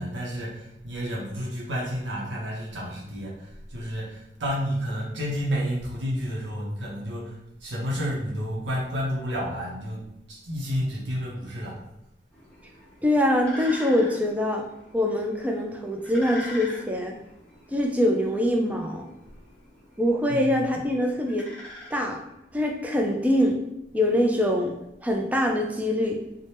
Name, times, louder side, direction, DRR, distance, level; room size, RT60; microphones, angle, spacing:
voice 1, 0.0-11.8 20.3-20.6, equal, 80° right, -4 dB, 0.7 m, -31 dB
sound 1, 12.3-22.6, left 1 dB, 5° left, 0.7 m, -44 dB
voice 2, 13.0-14.7 14.9-17.2 17.7-19.0 20.0-21.5 21.9-22.2 22.5-23.6 23.9-24.7 25.0-26.2, left 1 dB, 10° right, 1 dB, 0.3 m, -24 dB
2.8 x 2.1 x 3.2 m, 0.88 s
head